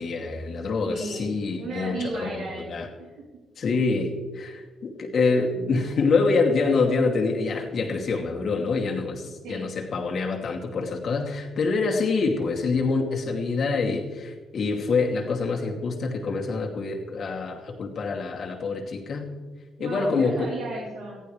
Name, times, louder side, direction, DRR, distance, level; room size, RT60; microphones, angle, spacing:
voice 1, 0.0-2.9 3.6-19.3 19.8-20.5, left 4 dB, 55° left, 1 dB, 2.5 m, -26 dB
voice 2, 0.9-1.3 1.6-3.3 9.4-9.7 19.8-21.2, right 2 dB, 90° right, -6 dB, 3.5 m, -35 dB
19.0 x 14.5 x 3.3 m, 1.3 s
cardioid pair, 90°, 0 cm